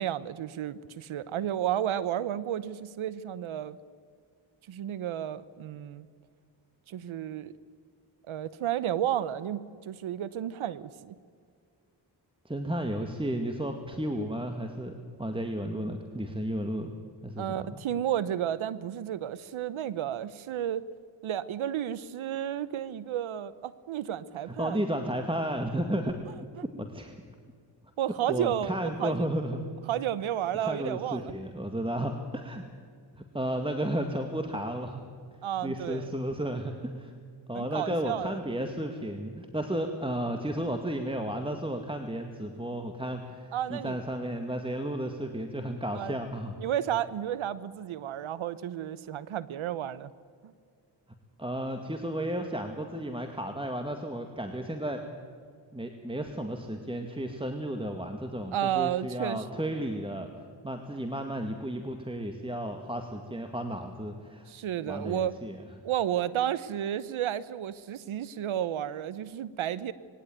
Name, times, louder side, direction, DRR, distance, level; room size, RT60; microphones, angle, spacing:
voice 1, 0.0-3.8 4.7-6.1 6.9-7.5 8.3-11.1 17.4-20.9 21.2-24.8 28.0-29.3 29.9-31.3 35.4-36.1 37.5-38.4 43.5-44.0 45.9-46.2 46.6-50.1 50.4-50.5 58.5-59.8 64.5-65.3 65.8-69.9, right 11 dB, 75° right, 17 dB, 1.0 m, -32 dB
voice 2, 12.4-17.0 17.2-17.8 24.5-26.2 26.8-27.2 28.3-29.6 30.6-32.6 33.1-35.1 35.6-37.1 37.5-46.5 51.4-55.0 55.7-60.3 60.6-64.5 64.8-65.6, right 1 dB, 10° right, 5 dB, 2.1 m, -33 dB
20.5 x 17.0 x 9.3 m, 2.1 s
supercardioid pair, 45°, 48 cm